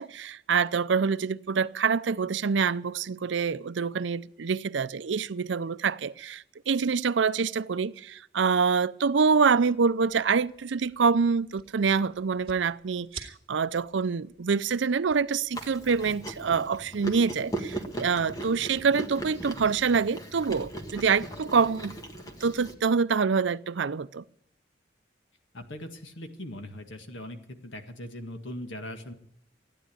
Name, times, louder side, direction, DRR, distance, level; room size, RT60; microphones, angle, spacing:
voice 1, 0.0-22.0 22.4-24.2, right 5 dB, 80° right, 0.5 m, -26 dB
sound 1, 9.5-16.2, right 6 dB, 30° right, 2.1 m, -51 dB
Chewing mastication, 15.5-22.7, right 2 dB, 20° left, 1.6 m, -38 dB
voice 2, 25.5-27.4 27.6-29.1, left 1 dB, 85° left, 2.0 m, -40 dB
15.0 x 10.0 x 8.6 m
head